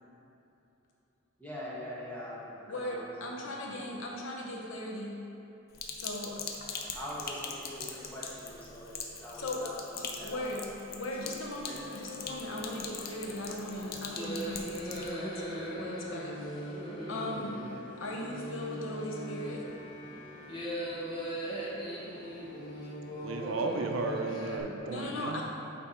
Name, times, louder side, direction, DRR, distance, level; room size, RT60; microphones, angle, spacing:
voice 1, 1.4-3.9 6.6-9.8 10.0-10.6 11.2-11.4, equal, 10° left, -7 dB, 1.4 m, -43 dB
voice 2, 2.7-5.2 6.0-6.4 9.4-9.6 9.9-10.6 10.9-17.6 18.0-19.6 24.9-25.4, left 1 dB, 85° left, -1 dB, 0.9 m, -38 dB
Sink (filling or washing), 5.7-15.1, left 5 dB, 50° left, 0.6 m, -42 dB
sound 1, 11.7-24.6, equal, 25° left, 1.0 m, -40 dB
sound 2, 12.5-22.8, right 1 dB, 45° right, 0.8 m, -57 dB
voice 3, 23.2-25.4, right 3 dB, 85° right, 4 dB, 0.6 m, -34 dB
8.2 x 3.5 x 4.4 m, 2.9 s
head